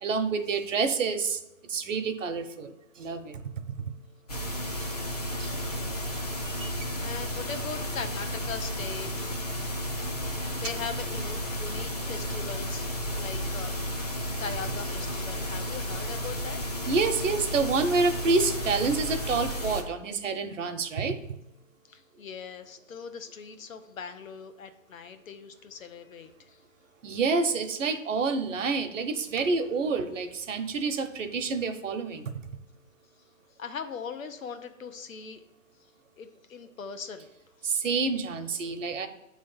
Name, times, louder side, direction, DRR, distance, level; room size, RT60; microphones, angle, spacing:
voice 1, 0.0-1.4 1.7-3.4 4.8-4.9 5.4-5.5 6.4-6.9 16.9-21.2 27.0-32.3 37.6-39.1, right 4 dB, 70° right, 7 dB, 0.9 m, -28 dB
sound 1, 4.3-19.8, equal, 30° left, 0.6 m, -33 dB
voice 2, 5.4-6.0 6.7-9.3 10.5-12.9 13.2-13.7 14.4-16.6 21.9-26.6 33.6-35.4 36.2-37.3, left 6 dB, 80° left, 9 dB, 0.9 m, -40 dB
9.1 x 3.2 x 5.6 m, 0.93 s
hypercardioid pair, 175°, 40 cm